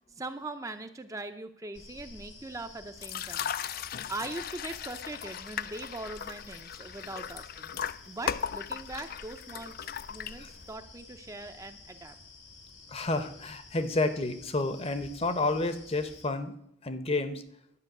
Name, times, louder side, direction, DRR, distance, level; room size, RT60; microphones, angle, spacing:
voice 1, 0.1-3.5 4.1-7.7 8.1-12.2, right 2 dB, 15° right, 8 dB, 0.6 m, -41 dB
sound 1, 1.7-16.3, left 3 dB, 70° left, 1.8 m, -51 dB
sound 2, 3.0-10.7, left 8 dB, 50° left, 0.4 m, -37 dB
voice 2, 12.9-16.5 16.8-17.4, left 2 dB, 30° left, 10 dB, 0.8 m, -30 dB
11.5 x 5.7 x 8.0 m, 0.72 s
head